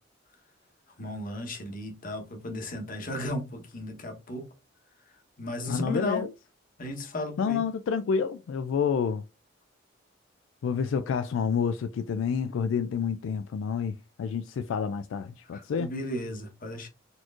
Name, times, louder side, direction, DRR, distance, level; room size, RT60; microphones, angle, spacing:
voice 1, 1.0-4.5 5.4-6.2 6.8-7.6 15.5-16.9, left 1 dB, 45° left, 1.0 m, -35 dB
voice 2, 5.7-6.3 7.4-9.2 10.6-15.9, left 6 dB, 75° left, 0.3 m, -29 dB
4.2 x 3.0 x 2.4 m
head